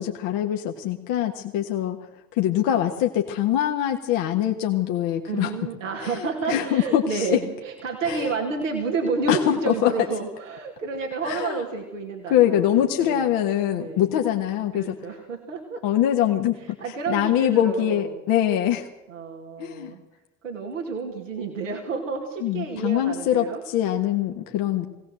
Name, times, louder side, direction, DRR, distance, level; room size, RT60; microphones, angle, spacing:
voice 1, 0.0-2.0 2.3-5.5 6.0-7.4 8.1-8.3 9.3-9.9 11.2-11.6 12.3-15.0 15.8-16.8 17.1-18.9 19.6-19.9 22.4-24.9, left 11 dB, 65° left, 3 dB, 1.6 m, -23 dB
voice 2, 5.3-13.4 13.7-14.1 14.7-15.8 16.6-18.1 19.1-20.0 20.4-23.6, right 4 dB, 85° right, 0 dB, 2.4 m, -30 dB
22.0 x 17.5 x 7.7 m, 0.96 s
hypercardioid pair, 60°, 37 cm